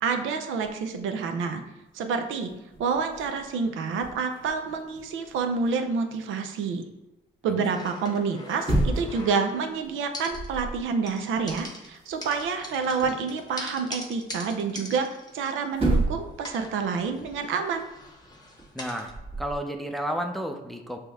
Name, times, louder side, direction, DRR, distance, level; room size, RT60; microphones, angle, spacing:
voice 1, 0.0-1.6 1.9-2.5 2.8-6.9 7.4-17.9, right 5 dB, 80° right, 6 dB, 0.6 m, -28 dB
sound 1, 0.6-1.0 1.6-1.7 1.9-6.2 8.3-9.3 9.7-9.9 10.3-10.8 11.1-13.3 15.3-15.4 15.7-16.4 16.7-19.6, right 1 dB, 30° right, 1.5 m, -32 dB
sound 2, 7.7-9.7 10.1-10.8 11.1-16.1 16.4-19.1, left 2 dB, 20° left, 0.9 m, -43 dB
voice 2, 18.7-19.1 19.4-21.0, equal, ahead, 4 dB, 0.5 m, -32 dB
5.2 x 2.9 x 3.5 m, 0.99 s
cardioid pair, 90°, 20 cm